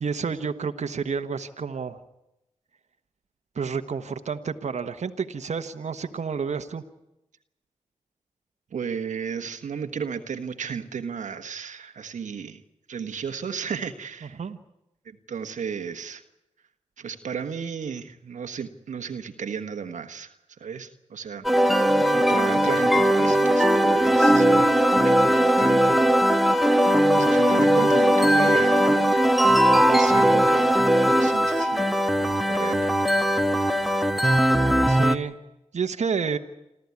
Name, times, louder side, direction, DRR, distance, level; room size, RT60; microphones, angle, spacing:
voice 1, 0.0-2.0 3.5-6.8 14.3-14.6 34.9-35.4 35.7-36.4, right 5 dB, 70° right, 6 dB, 1.4 m, -30 dB
voice 2, 8.7-12.6 12.9-14.4 15.3-16.2 17.0-20.3 20.6-21.5 21.8-26.2 27.1-29.0 29.9-30.9 31.1-31.9 32.5-32.9, right 6 dB, 85° right, 8 dB, 1.4 m, -34 dB
sound 1, 21.4-35.2, equal, ahead, 1.6 m, -19 dB
28.0 x 13.5 x 9.7 m, 0.88 s
cardioid pair, 60°, 12 cm